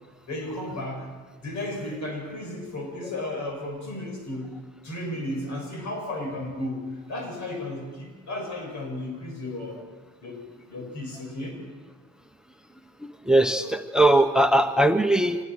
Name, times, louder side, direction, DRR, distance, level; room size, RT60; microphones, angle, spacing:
voice 1, 0.3-1.1 1.4-4.6 4.8-9.8 10.2-11.6, left 1 dB, 70° left, 2 dB, 7.2 m, -34 dB
voice 2, 13.3-15.4, right 1 dB, ahead, 9 dB, 1.0 m, -20 dB
25.0 x 20.0 x 6.4 m, 1.4 s
cardioid pair, 90°, 30 cm